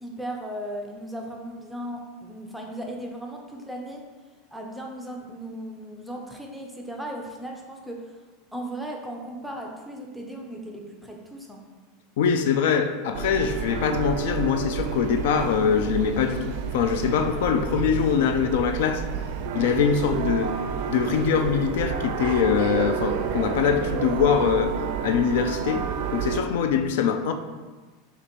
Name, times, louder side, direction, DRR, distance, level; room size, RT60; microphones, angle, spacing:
voice 1, 0.0-4.1 4.5-8.2 8.5-11.6, right 1 dB, ahead, 0 dB, 0.5 m, -36 dB
voice 2, 12.2-19.0 19.5-20.5 20.9-24.8 25.0-27.3, left 7 dB, 70° left, 7 dB, 0.3 m, -23 dB
sound 1, 13.1-26.4, right 7 dB, 60° right, 0.4 m, -30 dB
6.0 x 2.5 x 3.0 m, 1.3 s
supercardioid pair, 150°, 0 cm